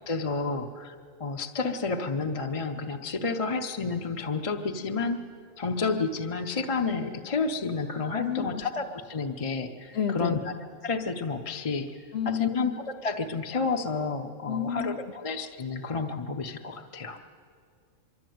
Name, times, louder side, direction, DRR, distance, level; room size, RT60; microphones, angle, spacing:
voice 1, 0.1-5.2 5.6-10.5 10.8-11.9 12.2-17.2, left 4 dB, 30° left, 5 dB, 0.8 m, -30 dB
voice 2, 8.2-8.7 9.9-10.4 12.1-12.5 14.5-15.0, left 8 dB, 55° left, 8 dB, 1.0 m, -30 dB
24.0 x 12.5 x 9.3 m, 2.1 s
omnidirectional pair, 1.3 m